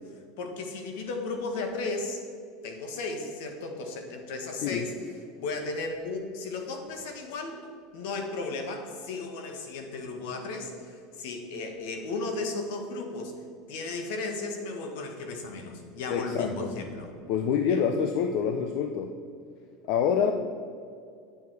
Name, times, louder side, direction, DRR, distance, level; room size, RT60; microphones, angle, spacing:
voice 1, 0.4-2.2 2.6-4.9 5.4-7.6 7.9-13.3 13.7-17.1 17.7-17.8, left 3 dB, 70° left, 4 dB, 1.6 m, -35 dB
voice 2, 16.1-16.7 17.3-19.1 19.9-20.3, left 7 dB, 50° left, 6 dB, 0.5 m, -26 dB
9.3 x 7.1 x 4.7 m, 2.3 s
supercardioid pair, 170°, 0 cm